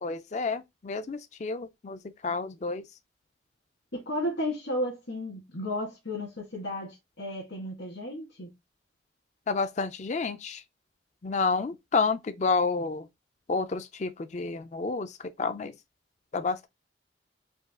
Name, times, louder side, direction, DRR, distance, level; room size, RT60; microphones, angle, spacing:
voice 1, 0.0-2.8 9.5-10.6 11.2-13.1 13.5-15.7 16.3-16.7, left 4 dB, 40° left, 0.4 m, -30 dB
voice 2, 3.9-8.5, left 1 dB, 75° left, 2.0 m, -33 dB
5.1 x 2.4 x 3.6 m
head